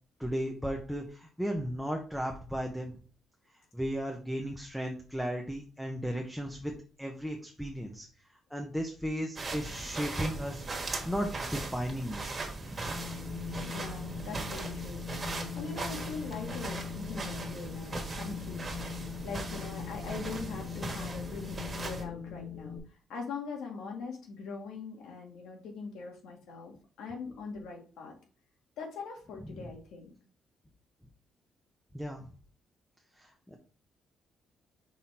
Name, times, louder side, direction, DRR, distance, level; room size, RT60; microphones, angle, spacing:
voice 1, 0.2-2.9 3.7-6.7 7.0-8.1 8.5-12.9 29.4-29.7 31.9-32.3 33.2-33.6, equal, ahead, 2 dB, 0.8 m, -35 dB
sound 1, 9.4-22.0, right 3 dB, 25° right, 1.6 m, -39 dB
Wind, 12.8-22.8, left 7 dB, 35° left, 1.8 m, -41 dB
voice 2, 13.6-28.2 28.8-30.1, left 4 dB, 85° left, 1 dB, 2.0 m, -42 dB
5.9 x 3.7 x 4.3 m, 0.39 s
cardioid pair, 125°, 0 cm